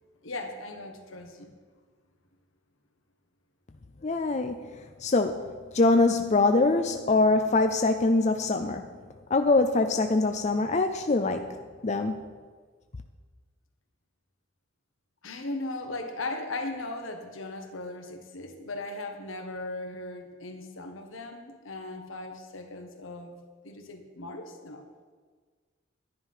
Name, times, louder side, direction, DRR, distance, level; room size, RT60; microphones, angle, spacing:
voice 1, 0.2-1.5 15.2-23.4 23.6-24.9, left 2 dB, 80° left, 4 dB, 1.5 m, -38 dB
voice 2, 4.0-4.6 5.0-5.5 5.7-8.9 9.3-11.6 11.8-12.2, left 3 dB, 35° left, 7 dB, 0.5 m, -23 dB
11.0 x 10.5 x 5.6 m, 1.5 s
head